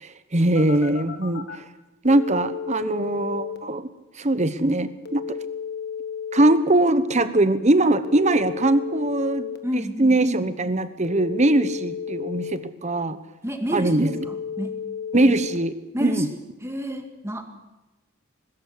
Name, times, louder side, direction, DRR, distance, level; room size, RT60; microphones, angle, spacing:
voice 1, 0.0-1.7 2.0-3.9 4.2-5.4 6.3-13.2 13.7-14.2 15.1-16.3, right 1 dB, 30° right, 13 dB, 1.0 m, -21 dB
Telephone, 0.6-1.6 2.1-3.6 5.1-6.6 8.0-9.6 11.0-12.6 14.1-15.6, left 7 dB, 45° left, 1.6 m, -33 dB
voice 2, 9.6-10.2 13.4-14.0 14.3-14.8 15.9-17.4, equal, 10° right, 5 dB, 2.0 m, -30 dB
21.5 x 13.5 x 9.7 m, 1.0 s
head